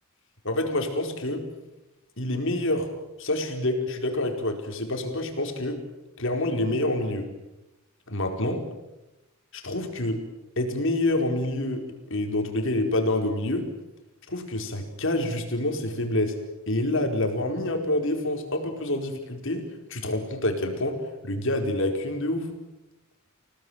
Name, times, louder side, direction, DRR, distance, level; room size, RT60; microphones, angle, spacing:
voice 1, 0.4-1.4 2.2-2.9 3.2-5.8 6.2-7.3 8.1-8.6 9.5-10.2 10.6-13.7 14.3-16.4 16.7-22.5, left 1 dB, 65° left, 4 dB, 4.7 m, -27 dB
29.0 x 18.0 x 9.4 m, 0.98 s
head